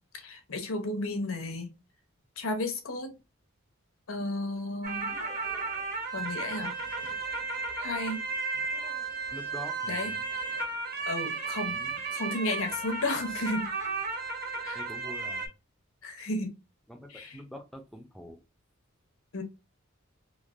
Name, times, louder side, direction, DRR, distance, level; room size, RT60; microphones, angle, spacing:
voice 1, 0.1-1.7 2.4-3.1 4.1-5.1 6.1-6.8 7.8-8.2 9.9-10.1 11.1-11.8 12.1-13.7 14.6-14.8 16.0-16.5 17.1-17.4 19.3-19.4, left 2 dB, 80° left, 0.8 m, -33 dB
sound 1, 4.8-15.5, right 4 dB, 45° right, 1.1 m, -34 dB
voice 2, 9.3-10.3 11.7-12.0 14.7-15.5 16.9-18.4, equal, ahead, 0.4 m, -45 dB
3.1 x 2.5 x 2.4 m
head